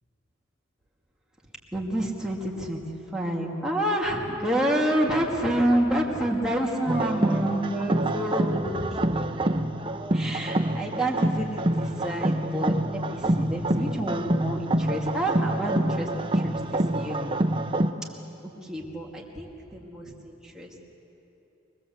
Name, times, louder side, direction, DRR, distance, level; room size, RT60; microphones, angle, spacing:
voice 1, 1.7-2.8 3.1-9.0 10.1-16.5 16.9-17.4 18.6-20.7, right 1 dB, 5° right, -3 dB, 2.7 m, -28 dB
sound 1, 6.9-17.9, right 1 dB, 25° right, 0.8 m, -26 dB
24.0 x 20.5 x 8.0 m, 2.9 s
head